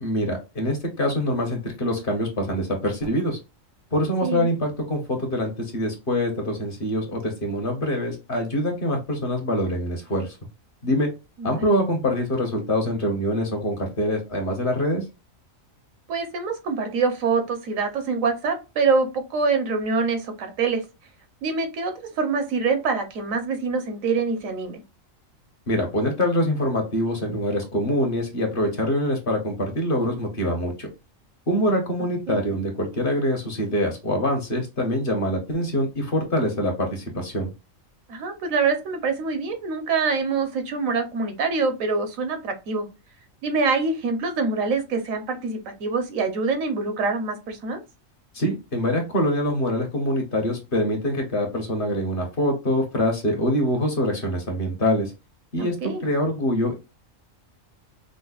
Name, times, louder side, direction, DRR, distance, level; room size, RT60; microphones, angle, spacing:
voice 1, 0.0-3.4 3.9-10.4 10.8-11.1 11.4-15.0 25.7-30.9 31.5-37.5 48.3-55.1 55.5-56.7, equal, 45° left, 2 dB, 1.0 m, -24 dB
voice 2, 11.4-11.7 16.1-20.8 21.4-24.8 32.3-32.4 38.1-42.9 43.4-47.8 55.6-56.0, right 4 dB, 80° right, 7 dB, 1.2 m, -25 dB
5.1 x 2.1 x 2.3 m, 0.27 s
omnidirectional pair, 1.4 m